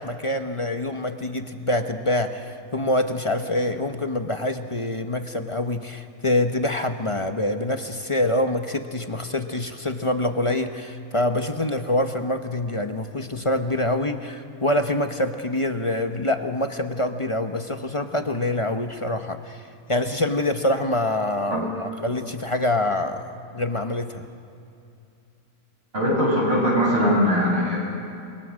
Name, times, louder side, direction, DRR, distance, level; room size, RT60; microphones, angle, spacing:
voice 1, 0.0-24.3, left 1 dB, 25° left, 6 dB, 0.9 m, -25 dB
voice 2, 25.9-27.8, equal, 40° right, -4 dB, 7.9 m, -20 dB
29.5 x 22.5 x 6.4 m, 2.6 s
omnidirectional pair, 1.5 m